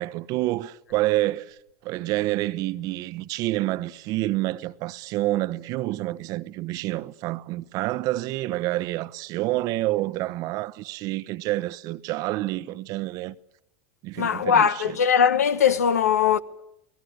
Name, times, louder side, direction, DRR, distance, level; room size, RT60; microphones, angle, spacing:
voice 1, 0.0-13.3 14.0-15.0, right 17 dB, 45° right, 0.9 m, -28 dB
voice 2, 14.2-16.4, left 7 dB, 80° left, 1.2 m, -20 dB
30.0 x 18.5 x 9.6 m
hypercardioid pair, 90°, 8 cm